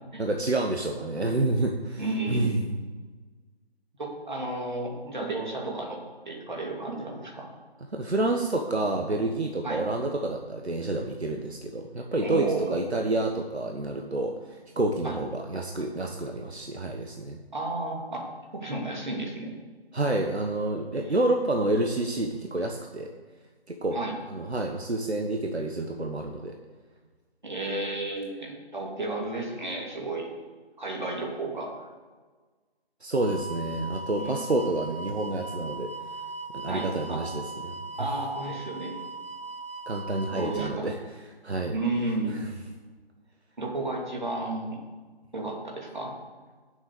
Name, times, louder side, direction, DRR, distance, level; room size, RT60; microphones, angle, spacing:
voice 1, 0.2-2.6 7.9-17.4 19.9-23.1 23.7-24.0 24.3-26.6 33.0-35.9 36.5-37.8 39.9-41.0 41.4-41.8 42.3-42.4, right 2 dB, 90° right, 3 dB, 1.4 m, -29 dB
voice 2, 2.0-2.5 4.0-6.0 6.2-7.5 9.6-9.8 12.2-12.8 15.0-15.2 17.5-18.2 18.5-19.5 21.0-21.1 23.9-24.1 27.4-30.3 30.8-31.9 34.2-34.4 36.7-37.2 38.0-38.9 40.3-40.9 41.7-42.4 43.6-44.8 45.3-46.1, right 2 dB, 45° right, -2 dB, 2.9 m, -32 dB
sound 1, 33.1-40.7, right 3 dB, 65° right, 0.7 m, -39 dB
10.0 x 7.2 x 6.9 m, 1.4 s
figure-of-eight pair, 170°, 32 cm